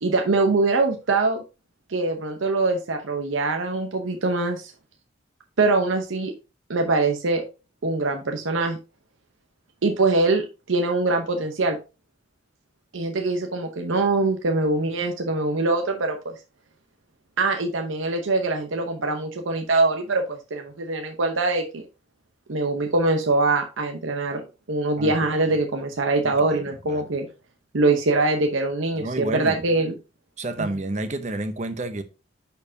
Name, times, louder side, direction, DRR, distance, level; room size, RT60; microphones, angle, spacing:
voice 1, 0.0-1.4 1.9-4.7 5.6-6.3 6.7-7.4 7.8-8.8 9.8-11.8 12.9-16.3 17.4-21.8 22.5-24.4 24.7-27.3 27.7-29.9 30.6-30.7, right 3 dB, 80° right, 0.8 m, -23 dB
voice 2, 26.2-27.1 28.9-29.6 30.4-32.0, right 2 dB, 35° right, 0.7 m, -30 dB
10.0 x 4.6 x 2.7 m
head